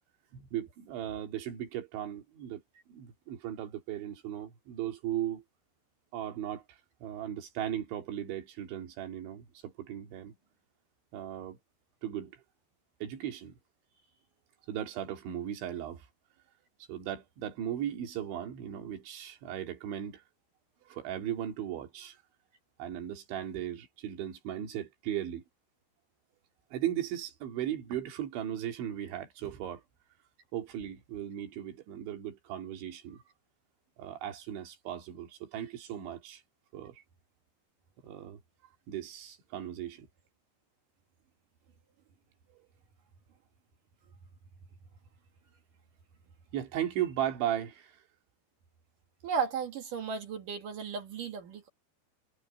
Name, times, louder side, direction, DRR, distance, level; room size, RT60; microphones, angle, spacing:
voice 1, 0.3-2.6 2.9-5.4 6.1-6.6 7.0-10.3 11.1-11.6 12.0-12.3 13.0-13.5 14.7-16.1 16.9-20.2 20.9-22.2 22.8-25.4 26.7-29.8 30.5-33.2 34.0-36.4 36.7-37.0 38.0-38.4 38.9-40.1 42.5-42.6 46.5-48.0, right 11 dB, 90° right, 4.9 m, -37 dB
voice 2, 49.2-51.7, right 6 dB, 55° right, 3.0 m, -34 dB
omnidirectional pair, 5.1 m